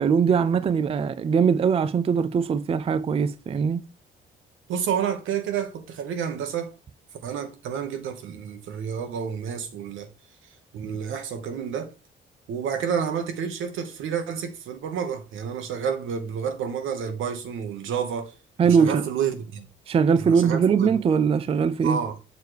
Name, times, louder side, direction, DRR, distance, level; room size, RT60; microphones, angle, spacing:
voice 1, 0.0-3.8 18.6-19.0 19.9-22.0, right 6 dB, 30° right, 0.4 m, -21 dB
voice 2, 4.7-6.7 7.2-10.1 10.7-11.9 12.5-18.4 18.6-19.7 20.2-20.9 21.8-22.2, right 7 dB, 80° right, 1.1 m, -29 dB
6.7 x 3.2 x 4.7 m
cardioid pair, 90°, 20 cm